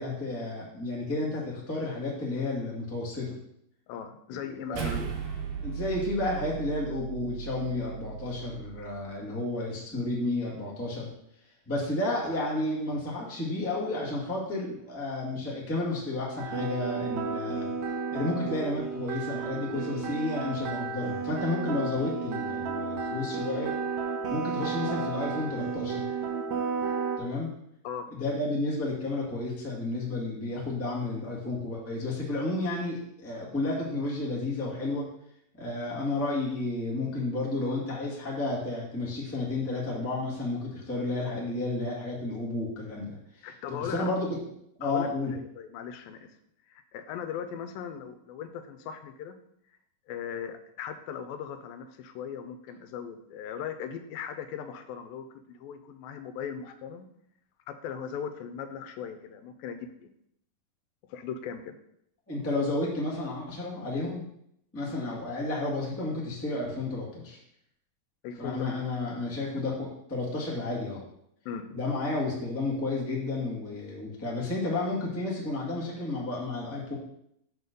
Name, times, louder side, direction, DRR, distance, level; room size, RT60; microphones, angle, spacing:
voice 1, 0.0-3.3 4.4-5.0 5.6-11.1 11.7-17.7 18.1-23.7 24.3-26.0 27.2-27.5 28.1-35.1 35.6-44.4 44.8-45.3 62.3-64.2 64.7-67.4 68.4-71.0 71.7-76.9, left 2 dB, 10° left, -4 dB, 0.9 m, -32 dB
voice 2, 3.9-5.0 27.8-28.1 43.4-44.1 44.8-46.3 46.7-49.4 50.1-57.1 57.7-60.1 61.1-61.8 64.9-65.0 68.2-68.6 69.6-69.7 71.5-71.7, left 7 dB, 85° left, 9 dB, 2.4 m, -38 dB
sound 1, 4.7-9.3, right 7 dB, 80° right, 2.9 m, -37 dB
sound 2, 16.4-27.2, right 5 dB, 65° right, 2.1 m, -32 dB
6.6 x 4.5 x 6.7 m, 0.74 s
omnidirectional pair, 4.1 m